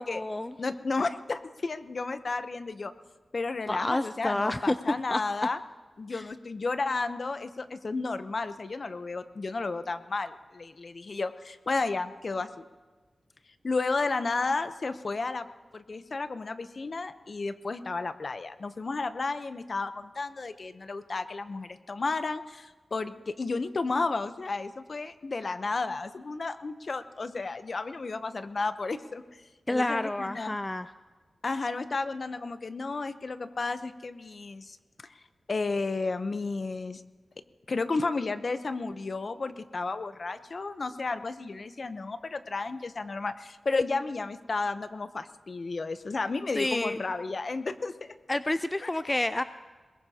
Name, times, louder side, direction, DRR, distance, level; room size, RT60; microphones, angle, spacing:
voice 1, 0.0-0.5 3.7-4.8 5.1-5.2 6.1-6.2 29.7-30.9 46.6-47.0 48.3-49.4, left 1 dB, 20° left, 12 dB, 0.4 m, -29 dB
voice 2, 0.6-2.9 3.3-5.6 6.0-12.6 13.6-15.5 15.7-29.2 29.7-30.5 31.4-34.8 35.0-35.1 35.5-37.0 37.7-48.2 48.8-48.9, left 3 dB, 50° left, 11 dB, 0.7 m, -32 dB
22.5 x 20.5 x 2.8 m, 1.3 s
wide cardioid pair, 90°, 0 cm